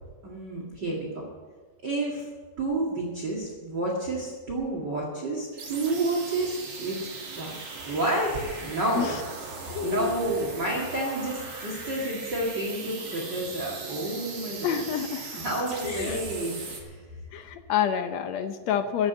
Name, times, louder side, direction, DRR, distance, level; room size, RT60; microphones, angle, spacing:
voice 1, 0.2-1.2 1.8-2.3 2.6-7.0 7.4-7.5 7.9-9.1 9.6-14.8 15.4-17.0, right 2 dB, 35° right, -2 dB, 2.5 m, -30 dB
sound 1, 5.5-16.8, right 4 dB, 50° right, 3.2 m, -39 dB
voice 2, 9.7-10.1 13.1-13.3 14.6-15.4 15.8-16.3 17.3-19.1, left 9 dB, 75° left, 9 dB, 1.7 m, -28 dB
15.0 x 7.9 x 8.5 m, 1.4 s
omnidirectional pair, 3.6 m